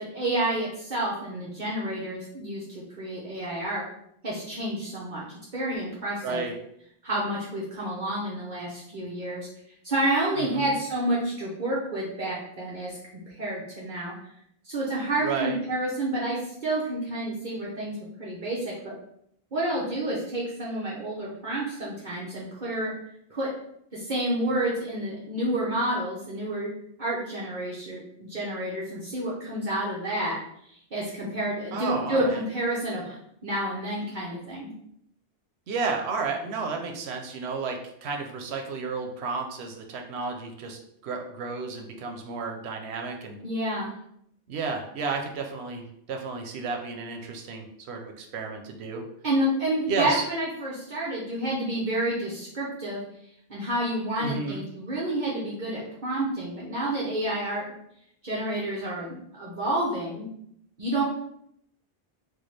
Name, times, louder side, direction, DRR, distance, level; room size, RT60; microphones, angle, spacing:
voice 1, 0.0-3.8 4.2-5.2 5.5-6.4 7.0-9.5 9.8-13.0 13.3-14.1 14.6-18.9 19.5-22.9 23.3-23.5 23.9-26.7 27.0-30.4 30.9-34.7 43.4-43.9 49.2-53.0 53.5-57.6 58.2-60.3 60.8-61.0, right 1 dB, 50° right, -6 dB, 0.8 m, -29 dB
voice 2, 6.2-6.6 10.4-10.7 15.2-15.6 31.7-32.4 35.7-43.4 44.5-49.0 49.9-50.2 54.2-54.6, right 4 dB, 85° right, 3 dB, 0.9 m, -32 dB
4.5 x 2.2 x 3.2 m, 0.73 s
omnidirectional pair, 1.1 m